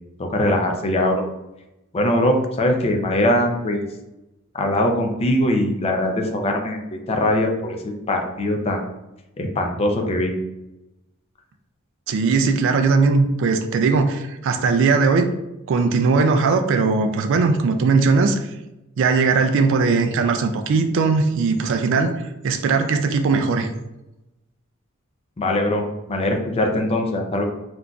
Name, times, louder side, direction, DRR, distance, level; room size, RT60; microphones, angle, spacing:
voice 1, 0.2-1.2 1.9-3.9 4.5-8.8 9.4-10.3 25.4-27.4, left 1 dB, 30° left, 3 dB, 0.4 m, -21 dB
voice 2, 12.1-15.3 15.7-18.4 19.0-23.7, right 4 dB, 60° right, 6 dB, 0.3 m, -19 dB
3.8 x 2.4 x 2.3 m, 0.93 s
head